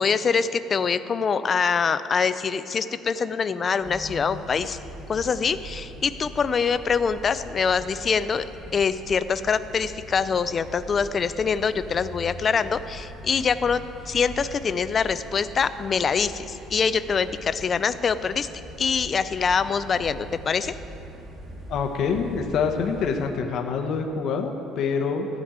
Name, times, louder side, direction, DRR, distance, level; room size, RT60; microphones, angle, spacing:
voice 1, 0.0-4.8 5.1-8.5 8.7-18.5 18.8-20.7, left 6 dB, 30° left, 13 dB, 0.4 m, -24 dB
sound 1, 3.8-23.3, equal, 40° right, 2.1 m, -42 dB
voice 2, 21.7-25.3, left 5 dB, 50° left, 3 dB, 0.8 m, -26 dB
15.0 x 5.1 x 8.7 m, 2.9 s
cardioid pair, 160°, 0 cm